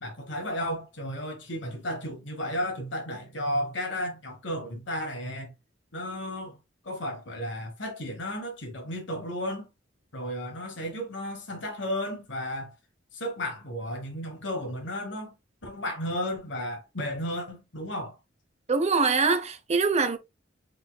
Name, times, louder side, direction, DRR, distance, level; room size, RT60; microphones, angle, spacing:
voice 1, 0.0-5.5 5.9-6.6 6.8-9.7 10.1-12.7 13.1-15.3 15.6-18.1, equal, 70° left, 1.4 m, -33 dB
voice 2, 18.7-20.2, right 4 dB, 35° right, 0.7 m, -23 dB
5.3 x 4.0 x 2.3 m
head